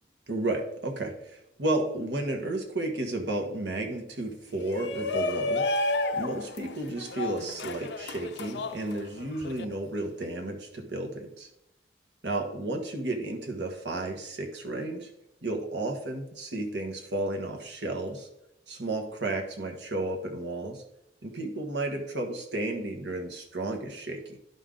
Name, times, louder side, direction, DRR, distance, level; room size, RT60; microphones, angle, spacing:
voice 1, 0.3-5.7 6.1-11.5 12.2-15.1 15.4-18.3 18.7-20.8 21.2-24.4, right 2 dB, 75° right, 2 dB, 1.4 m, -32 dB
Shout, 4.5-9.6, left 2 dB, 75° left, 0.6 m, -31 dB
11.0 x 5.5 x 3.8 m, 0.84 s
head